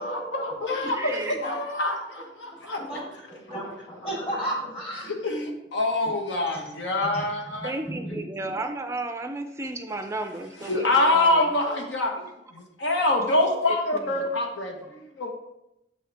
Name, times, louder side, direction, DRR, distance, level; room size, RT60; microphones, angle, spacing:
voice 1, 0.0-3.0 5.0-7.7 10.6-15.3, left 2 dB, 85° left, 2 dB, 1.1 m, -26 dB
voice 2, 0.8-1.4 2.6-2.7 7.6-11.4 13.9-14.1, right 2 dB, 15° right, 6 dB, 0.4 m, -33 dB
voice 3, 2.8-5.1 6.0-6.1 7.1-7.2 7.8-8.2, right 1 dB, 35° left, -3 dB, 2.4 m, -33 dB
7.1 x 6.4 x 3.4 m, 0.86 s
head